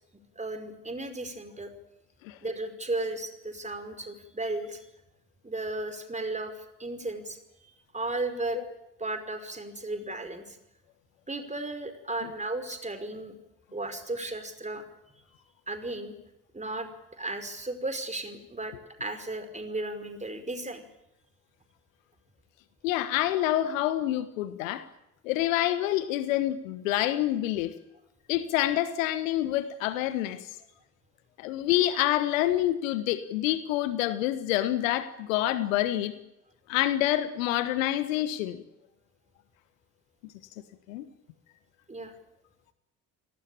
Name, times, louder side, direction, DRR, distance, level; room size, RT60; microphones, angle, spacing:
voice 1, 0.4-1.7 2.4-4.9 5.4-8.6 9.0-10.6 11.3-13.3 13.7-14.8 15.7-16.1 16.5-16.9 17.2-18.7 19.0-20.8 41.9-42.1, right 2 dB, 15° right, 7 dB, 5.3 m, -35 dB
voice 2, 22.8-24.9 25.2-27.7 28.3-30.5 31.4-36.1 36.7-38.6 40.9-41.1, left 13 dB, 70° left, 13 dB, 1.5 m, -27 dB
29.0 x 18.5 x 8.8 m, 0.86 s
figure-of-eight pair, 45°, 42 cm